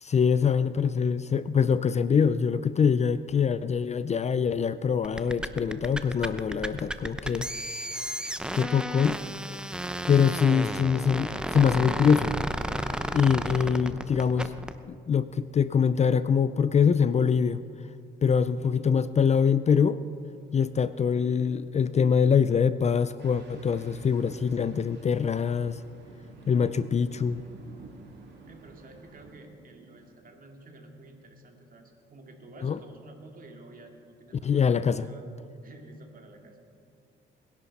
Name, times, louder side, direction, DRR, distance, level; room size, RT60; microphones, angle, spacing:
voice 1, 0.0-7.5 7.7-8.0 8.5-9.2 10.1-12.4 13.1-14.5 14.9-17.6 18.2-20.0 20.5-25.8 26.5-27.4 32.6-32.8 34.4-35.1, left 6 dB, 35° left, 14 dB, 0.4 m, -24 dB
sound 1, 5.0-14.8, right 1 dB, 5° right, 0.7 m, -33 dB
voice 2, 13.2-13.7 28.4-35.2 35.6-36.6, right 2 dB, 45° right, 2 dB, 2.3 m, -50 dB
sound 2, 20.0-30.1, right 4 dB, 90° right, 4.3 m, -54 dB
sound 3, 23.2-29.3, right 3 dB, 60° right, 2.6 m, -54 dB
21.0 x 11.0 x 4.2 m, 2.4 s
cardioid pair, 90°, 20 cm